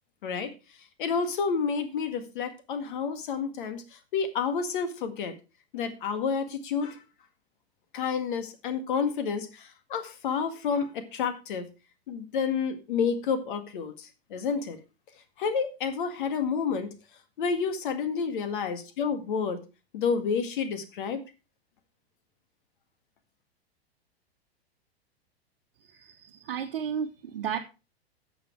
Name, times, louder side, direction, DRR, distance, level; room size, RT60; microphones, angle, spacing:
voice 1, 0.2-0.5 1.0-3.8 4.1-5.3 5.7-7.0 7.9-11.7 12.1-14.8 15.4-16.9 17.4-19.6 19.9-21.2, left 6 dB, 50° left, 9 dB, 2.0 m, -29 dB
voice 2, 26.2-27.6, right 8 dB, 55° right, 1 dB, 1.3 m, -32 dB
12.0 x 7.3 x 4.6 m, 0.30 s
figure-of-eight pair, 100°, 32 cm